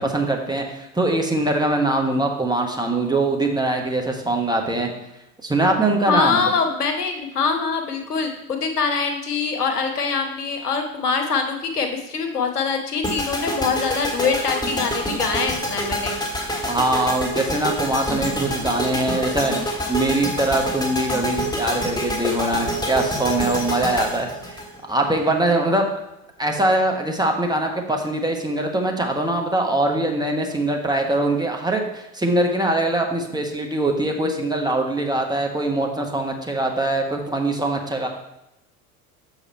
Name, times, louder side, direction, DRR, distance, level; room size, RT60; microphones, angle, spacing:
voice 1, 0.0-4.9 5.4-6.5 16.7-24.6 24.9-25.9 26.4-38.1, right 2 dB, 10° right, 2 dB, 1.2 m, -22 dB
voice 2, 6.1-16.1, left 5 dB, 85° left, 4 dB, 1.0 m, -24 dB
sound 1, 13.0-25.2, equal, 10° left, 1.7 m, -27 dB
7.1 x 5.1 x 4.3 m, 0.87 s
figure-of-eight pair, 70°, 45 cm